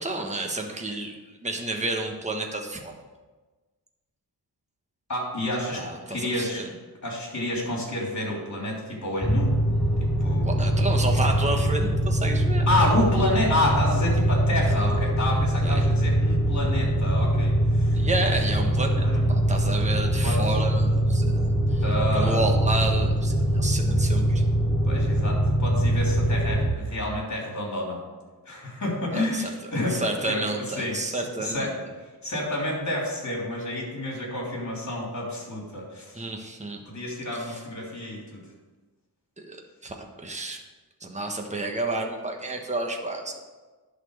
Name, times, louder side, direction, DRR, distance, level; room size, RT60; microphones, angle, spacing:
voice 1, 0.0-2.9 5.7-6.7 10.5-12.7 15.6-16.0 17.9-21.8 22.1-24.4 29.1-29.5 29.9-31.7 36.1-36.8 37.5-37.6 39.4-40.6 41.0-43.4, right 2 dB, 15° right, 2 dB, 1.2 m, -30 dB
voice 2, 5.1-5.8 6.1-6.7 7.0-9.5 10.0-10.6 12.7-18.0 19.0-19.2 20.2-20.6 21.8-22.5 24.8-28.0 28.4-31.8 32.2-36.2 36.8-38.4, left 1 dB, 45° left, -2 dB, 3.3 m, -29 dB
sound 1, 9.2-26.7, right 1 dB, ahead, 1.4 m, -23 dB
11.0 x 4.4 x 6.4 m, 1.3 s
wide cardioid pair, 95°, 40 cm